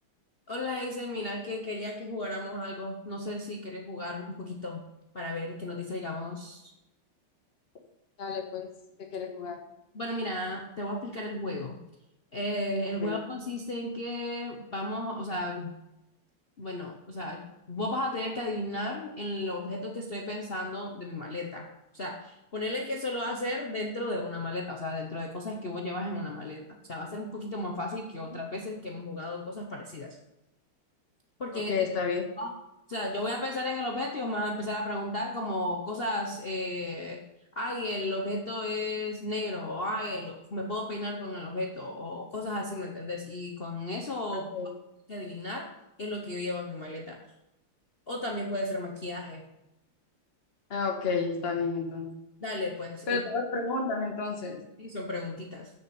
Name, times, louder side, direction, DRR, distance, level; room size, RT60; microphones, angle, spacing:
voice 1, 0.5-4.8 5.1-6.6 9.9-11.8 12.3-15.7 16.6-21.7 21.9-30.2 31.4-31.8 32.4-32.5 32.9-37.2 37.5-44.5 45.1-45.7 46.0-47.2 48.1-49.4 52.4-53.2 54.8-55.7, left 1 dB, 65° left, 0 dB, 0.5 m, -34 dB
voice 2, 8.2-8.7 9.1-9.6 13.0-13.1 31.5-32.2 44.3-44.7 50.7-52.2 53.1-54.6, left 4 dB, 35° left, 2 dB, 1.3 m, -31 dB
6.8 x 5.7 x 6.9 m, 0.90 s
omnidirectional pair, 2.4 m